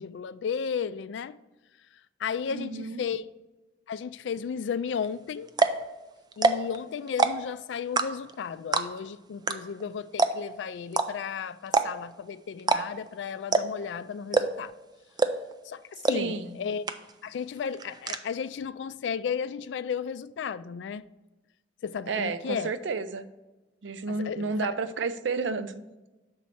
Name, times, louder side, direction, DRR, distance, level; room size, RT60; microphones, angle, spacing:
voice 1, 0.0-1.4 2.2-3.2 3.9-5.5 6.4-14.7 15.6-15.8 16.1-16.9 17.2-21.1 21.8-22.7 24.1-24.5, left 6 dB, 75° left, 0.3 m, -34 dB
voice 2, 2.5-3.0 16.1-16.6 22.1-23.3 23.8-25.7, right 4 dB, 90° right, 0.5 m, -31 dB
sound 1, 5.0-5.1 5.5-5.8 6.3-6.8 7.1-7.5 8.0-8.3 8.7-9.1 9.5-9.6 9.8-9.9 10.2-10.5 10.9-11.1 11.7-12.1 12.6-13.1 13.5-13.8 14.3-14.7 15.2-15.5 16.0-16.2 16.5-16.6 16.9-17.3 17.6-18.2, right 3 dB, 25° right, 0.4 m, -23 dB
6.4 x 4.1 x 5.8 m
head